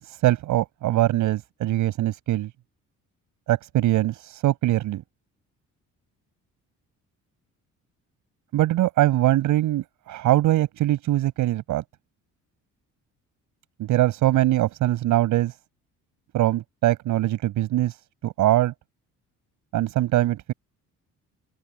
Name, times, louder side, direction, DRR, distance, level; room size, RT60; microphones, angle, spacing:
voice 1, 0.0-2.5 3.5-5.0 8.5-11.8 13.8-15.5 16.3-18.0 18.2-18.7 19.7-20.5, right 14 dB, 75° right, 6.6 m, -22 dB
cardioid pair, 175°, 30 cm